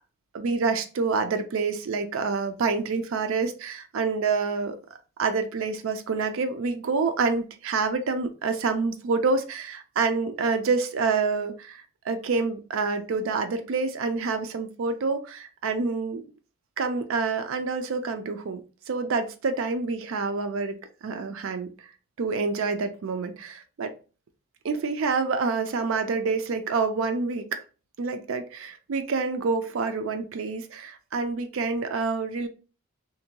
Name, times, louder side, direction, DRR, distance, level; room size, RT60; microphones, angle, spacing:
voice 1, 0.3-4.8 5.2-16.2 16.8-18.6 18.9-20.8 21.0-21.7 22.2-23.9 24.6-27.5 28.0-32.5, right 4 dB, 65° right, 7 dB, 0.4 m, -27 dB
2.6 x 2.2 x 2.8 m, 0.35 s
head